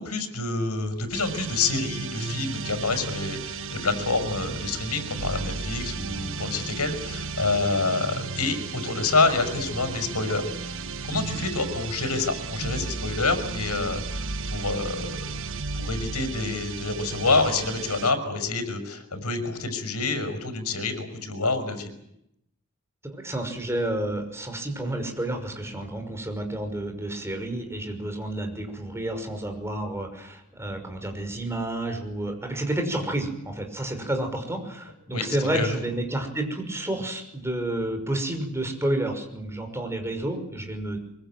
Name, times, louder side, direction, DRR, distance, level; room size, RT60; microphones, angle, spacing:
voice 1, 0.0-15.2 15.7-21.9 35.1-35.3 35.5-35.7, left 3 dB, 85° left, 8 dB, 6.2 m, -27 dB
sound 1, 1.1-18.1, right 4 dB, 60° right, 1.3 m, -34 dB
voice 2, 23.0-41.0, right 1 dB, 10° right, 4 dB, 5.9 m, -30 dB
24.5 x 23.0 x 9.2 m, 0.79 s
head